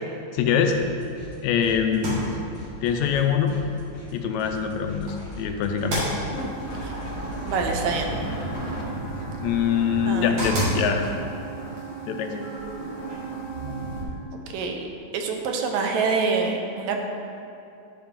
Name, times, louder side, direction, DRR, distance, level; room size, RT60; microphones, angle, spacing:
voice 1, 0.3-0.8 1.4-2.2 2.8-3.6 4.1-6.1 9.4-11.1 12.1-12.5, left 7 dB, 80° left, 5 dB, 1.8 m, -24 dB
sound 1, 0.7-1.4 1.6-8.1, left 1 dB, 45° left, 2.2 m, -41 dB
sound 2, 1.9-13.5, right 1 dB, 60° right, 2.9 m, -35 dB
sound 3, 6.3-14.0, right 3 dB, 65° left, 2.3 m, -34 dB
voice 2, 7.5-8.1 10.1-10.3 14.5-14.9 15.1-17.0, right 4 dB, 80° right, 3 dB, 2.0 m, -26 dB
10.5 x 5.2 x 3.6 m, 2.6 s
omnidirectional pair, 3.3 m